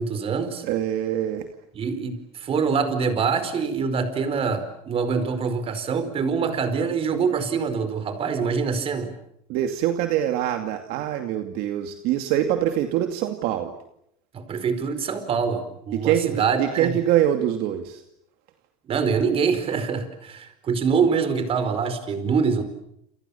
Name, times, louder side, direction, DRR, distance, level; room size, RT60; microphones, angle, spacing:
voice 1, 0.0-0.6 1.7-9.1 14.3-16.9 18.9-22.6, right 5 dB, 30° right, 10 dB, 4.8 m, -25 dB
voice 2, 0.6-1.5 9.5-13.7 15.9-18.0, right 11 dB, 55° right, 5 dB, 2.5 m, -24 dB
29.0 x 28.5 x 7.2 m, 0.77 s
supercardioid pair, 135°, 18 cm